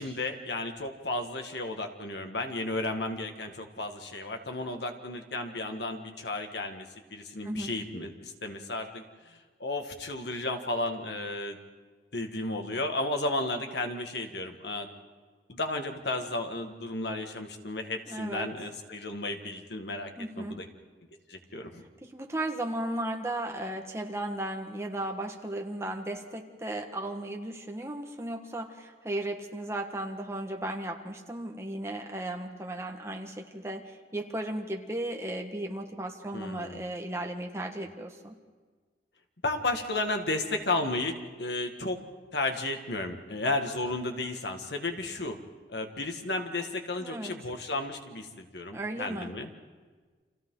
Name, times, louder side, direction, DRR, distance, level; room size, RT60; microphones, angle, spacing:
voice 1, 0.0-6.9 7.1-11.6 12.1-14.9 15.5-20.1 20.4-20.7 21.3-21.8 36.3-36.8 39.4-42.0 42.3-45.4 45.7-49.5, left 2 dB, 70° left, 5 dB, 1.9 m, -33 dB
voice 2, 18.1-18.5 20.2-20.6 22.0-38.3 47.0-47.3 48.7-49.3, right 1 dB, 15° right, 3 dB, 1.6 m, -35 dB
30.0 x 26.0 x 3.9 m, 1.4 s
head